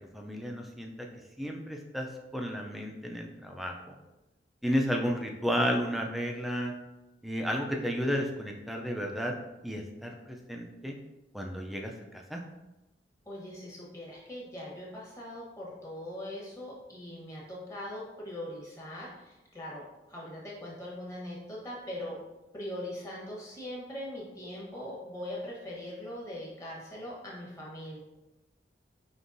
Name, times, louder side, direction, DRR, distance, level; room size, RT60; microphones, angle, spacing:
voice 1, 0.1-0.9 1.4-2.1 2.3-3.7 4.6-6.7 7.2-9.3 9.6-10.9 11.3-11.9 12.3-12.4, equal, ahead, 1 dB, 0.4 m, -32 dB
voice 2, 13.3-22.2 22.5-28.0, left 1 dB, 15° left, -5 dB, 1.1 m, -41 dB
5.3 x 2.9 x 2.6 m, 1.0 s
head